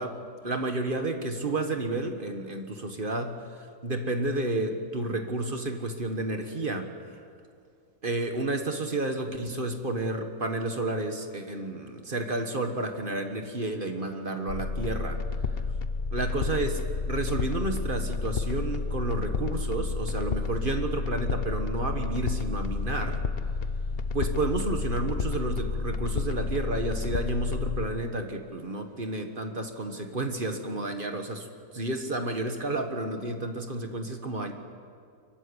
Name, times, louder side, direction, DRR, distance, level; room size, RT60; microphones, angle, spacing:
voice 1, 0.0-6.9 8.0-15.2 16.1-23.2 24.1-31.5 31.7-34.5, right 2 dB, 35° right, 5 dB, 1.6 m, -31 dB
sound 1, 14.5-27.9, left 4 dB, 45° left, 0.9 m, -31 dB
24.5 x 15.0 x 9.9 m, 2.3 s
omnidirectional pair, 1.7 m